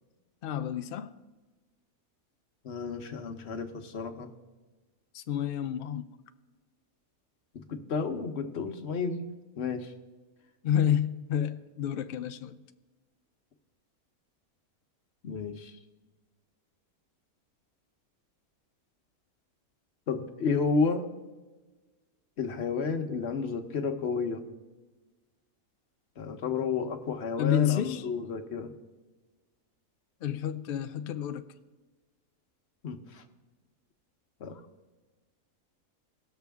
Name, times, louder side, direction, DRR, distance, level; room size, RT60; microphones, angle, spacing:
voice 1, 0.4-1.1 5.1-6.0 10.6-12.6 27.4-28.0 30.2-31.4, left 9 dB, 85° left, 0.4 m, -29 dB
voice 2, 2.6-4.3 7.5-9.2 9.6-9.9 15.2-15.8 20.1-21.1 22.4-24.4 26.2-28.7 32.8-33.2 34.4-34.6, left 5 dB, 50° left, 1.1 m, -31 dB
18.5 x 6.7 x 3.5 m
omnidirectional pair, 1.5 m